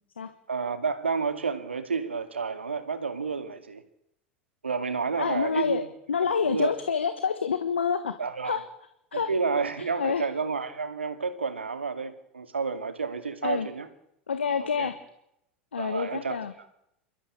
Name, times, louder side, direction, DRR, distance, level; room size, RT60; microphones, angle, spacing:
voice 1, 0.5-3.8 4.6-5.9 6.5-6.7 8.2-8.6 9.1-13.9 14.8-14.9 15.8-16.4, right 5 dB, 80° right, 2.2 m, -30 dB
voice 2, 5.2-5.8 6.1-8.1 8.4-8.6 9.1-9.3 10.0-10.2 13.4-13.7 14.3-14.9 15.7-16.5, left 6 dB, 80° left, 1.4 m, -27 dB
28.0 x 13.0 x 8.6 m
figure-of-eight pair, 85°, 6 cm